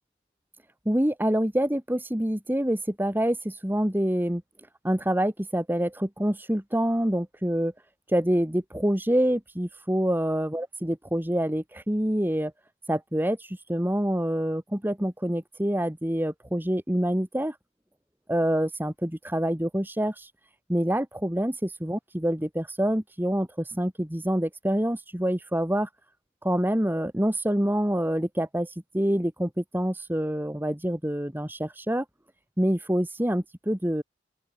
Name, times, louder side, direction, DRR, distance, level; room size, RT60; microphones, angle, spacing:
voice 1, 0.9-4.4 4.8-7.7 8.1-12.5 12.9-17.6 18.3-20.3 20.7-25.9 26.4-32.1 32.6-34.0, equal, 10° right, 1.9 m, -26 dB
open air
head